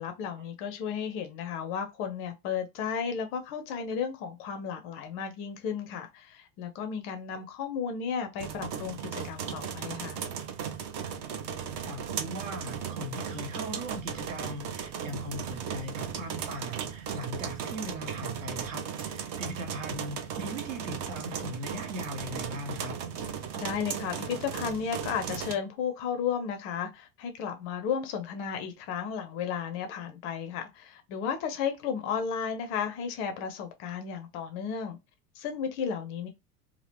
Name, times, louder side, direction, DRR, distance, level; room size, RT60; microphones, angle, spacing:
voice 1, 0.0-10.2 23.5-35.0 35.4-36.3, left 7 dB, 30° left, 0.5 m, -34 dB
sound 1, 8.4-25.5, right 7 dB, 30° right, 0.4 m, -36 dB
voice 2, 11.8-23.0, equal, 55° right, 1.0 m, -39 dB
2.7 x 2.4 x 3.3 m
figure-of-eight pair, 80°, 45 cm